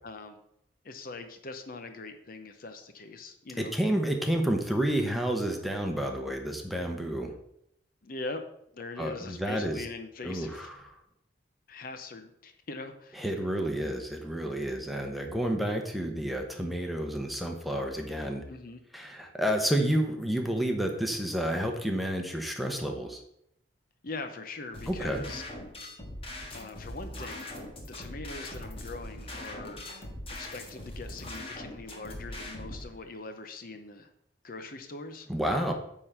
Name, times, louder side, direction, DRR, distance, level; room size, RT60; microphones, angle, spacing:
voice 1, 0.0-0.4 0.8-3.8 8.0-8.4 8.7-10.7 11.7-13.3 18.5-18.8 24.0-25.4 26.5-27.5 27.8-29.9 30.3-34.1 34.4-35.3, left 3 dB, 55° left, 7 dB, 0.7 m, -42 dB
voice 2, 3.6-7.4 9.0-9.8 10.2-10.9 13.2-18.4 18.9-23.2 24.9-25.2 35.3-35.7, right 1 dB, ahead, 2 dB, 1.0 m, -30 dB
sound 1, 24.7-32.8, left 1 dB, 35° left, 1.5 m, -41 dB
9.0 x 3.8 x 6.7 m, 0.74 s
head